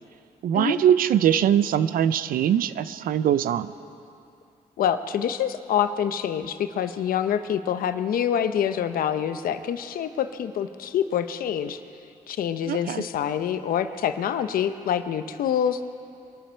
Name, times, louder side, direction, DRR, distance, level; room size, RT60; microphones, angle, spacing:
voice 1, 0.4-3.7 12.7-13.0, right 10 dB, 75° right, 14 dB, 0.6 m, -22 dB
voice 2, 4.8-11.8 12.3-15.8, left 9 dB, 80° left, 10 dB, 0.8 m, -26 dB
25.0 x 12.5 x 4.5 m, 2.6 s
cardioid pair, 100°, 15 cm